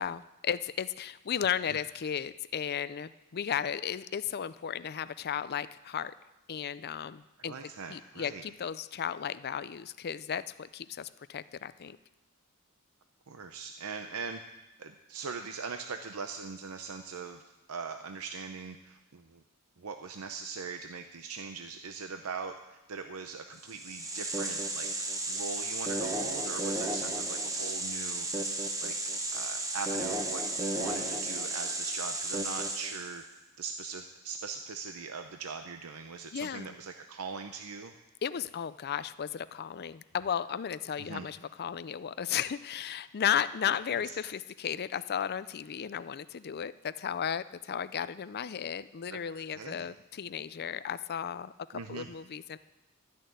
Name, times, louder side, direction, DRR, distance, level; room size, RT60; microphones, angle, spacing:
voice 1, 0.0-6.1 6.5-7.5 7.9-12.0 36.3-36.7 38.2-51.5 51.9-52.6, left 8 dB, 45° left, 15 dB, 0.4 m, -34 dB
voice 2, 7.4-8.4 13.3-14.4 14.8-17.4 17.7-19.4 19.8-24.9 25.3-28.3 28.8-29.0 29.3-33.2 33.6-37.9 41.0-41.3 43.9-44.0 49.1-49.2 49.5-49.9 51.7-52.1, right 5 dB, 70° right, 6 dB, 0.7 m, -41 dB
sound 1, 23.6-33.2, right 2 dB, 15° right, 1.1 m, -33 dB
13.0 x 6.5 x 9.2 m, 0.98 s
head